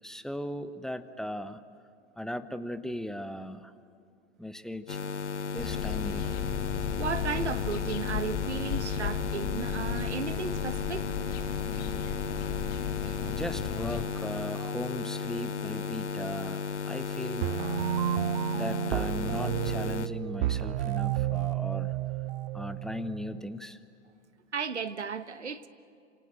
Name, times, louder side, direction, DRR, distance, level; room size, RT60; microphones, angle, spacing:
voice 1, 0.0-1.6 2.2-3.7 4.4-5.0 5.5-6.2 13.3-17.5 18.5-22.0 22.5-23.8, left 1 dB, ahead, 12 dB, 0.7 m, -37 dB
sound 1, 4.9-20.1, left 5 dB, 75° left, 0.9 m, -34 dB
sound 2, 5.6-14.1, left 9 dB, 25° left, 1.3 m, -35 dB
voice 2, 7.0-11.1 13.0-13.1 14.6-14.7 24.5-25.7, right 6 dB, 75° right, 12 dB, 1.4 m, -35 dB
sound 3, 17.4-23.4, right 12 dB, 40° right, 1.2 m, -31 dB
27.5 x 27.0 x 7.9 m, 2.4 s
figure-of-eight pair, 105°, 35 cm